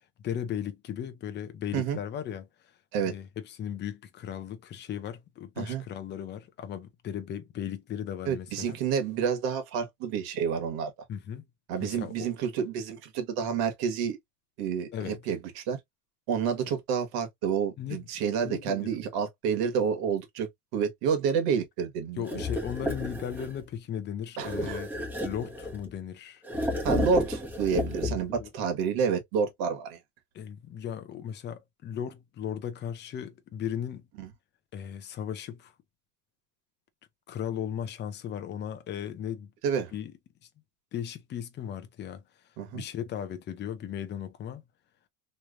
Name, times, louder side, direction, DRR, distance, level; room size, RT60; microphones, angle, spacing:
voice 1, 0.2-2.5 3.0-8.8 11.1-11.4 11.8-12.3 14.9-15.2 17.8-18.1 18.4-19.0 22.2-24.9 25.2-26.4 27.9-28.0 28.4-28.5 30.3-34.0 34.7-35.7 37.3-39.5 39.9-40.1 40.9-42.2 42.7-44.6, left 9 dB, 25° left, 0.6 m, -36 dB
voice 2, 8.3-10.9 11.7-14.2 14.6-15.8 16.3-22.4 24.4-24.8 26.8-30.0 34.2-34.3 39.6-39.9 42.6-42.8, right 6 dB, 60° right, 1.6 m, -29 dB
sound 1, 22.3-23.6 24.4-25.9 26.4-28.4, left 1 dB, 5° right, 1.1 m, -32 dB
3.2 x 3.1 x 2.5 m
cardioid pair, 160°, 43 cm